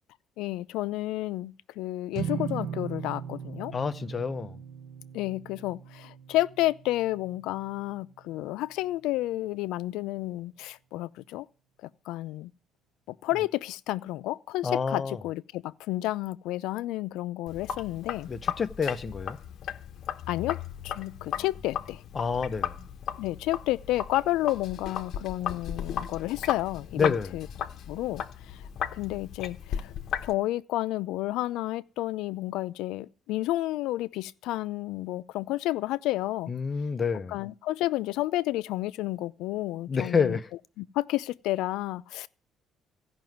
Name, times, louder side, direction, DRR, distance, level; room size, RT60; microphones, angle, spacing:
voice 1, 0.4-3.7 5.1-11.5 12.1-12.5 13.1-18.3 20.3-20.6 20.8-22.0 23.2-27.5 27.9-28.6 28.9-29.9 30.2-36.5 37.3-40.4 40.8-42.3, left 16 dB, 90° left, 0.6 m, -31 dB
sound 1, 2.1-8.6, right 8 dB, 65° right, 1.1 m, -39 dB
voice 2, 3.7-4.6 14.6-15.2 18.3-19.4 22.1-22.7 27.0-27.3 36.5-37.4 39.9-40.5, left 5 dB, 30° left, 0.8 m, -28 dB
Sink (filling or washing), 17.5-30.3, left 9 dB, 55° left, 1.0 m, -36 dB
15.5 x 5.9 x 9.3 m
cardioid pair, 140°, 0 cm